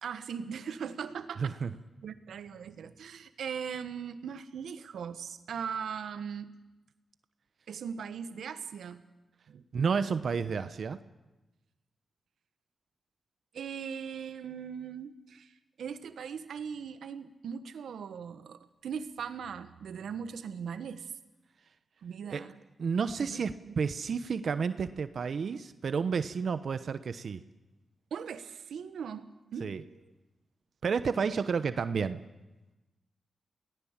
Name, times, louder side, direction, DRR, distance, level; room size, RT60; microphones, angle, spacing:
voice 1, 0.0-1.5 2.0-6.6 7.7-9.0 9.5-9.6 13.5-15.5 15.8-21.1 22.0-22.6 23.2-23.7 28.1-30.0, right 7 dB, 85° right, 11 dB, 1.3 m, -39 dB
voice 2, 1.4-1.7 9.7-11.0 22.3-22.4 22.8-27.4 29.6-29.8 30.8-32.2, right 5 dB, 70° right, 12 dB, 0.9 m, -31 dB
23.5 x 18.5 x 7.4 m, 1.1 s
cardioid pair, 55°, 0 cm